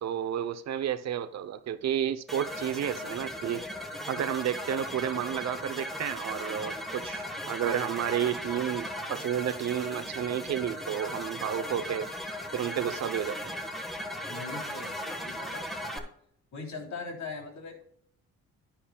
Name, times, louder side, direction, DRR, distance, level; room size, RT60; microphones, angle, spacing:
voice 1, 0.0-3.6 4.1-12.1 12.5-13.4, right 10 dB, 60° right, 0.7 m, -31 dB
sound 1, 2.3-16.0, left 1 dB, ahead, 1.3 m, -37 dB
voice 2, 14.2-16.0 16.5-17.8, left 4 dB, 65° left, 3.2 m, -41 dB
10.0 x 10.0 x 2.3 m
cardioid pair, 90°, 30 cm